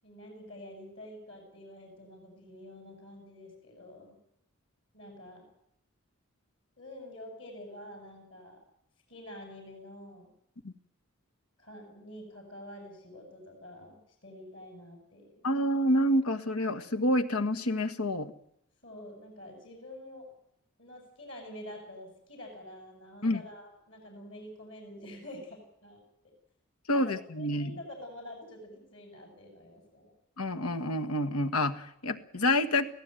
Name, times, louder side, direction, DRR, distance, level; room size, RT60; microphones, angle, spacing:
voice 1, 0.0-4.2 4.9-5.5 6.8-8.6 9.1-10.3 11.6-15.5 18.8-20.3 20.8-26.3 26.9-30.1, left 1 dB, 60° left, 2 dB, 7.7 m, -47 dB
voice 2, 15.4-18.3 23.2-23.4 26.9-27.7 30.4-32.9, left 1 dB, 90° left, 7 dB, 1.6 m, -28 dB
25.0 x 16.5 x 9.2 m, 0.76 s
head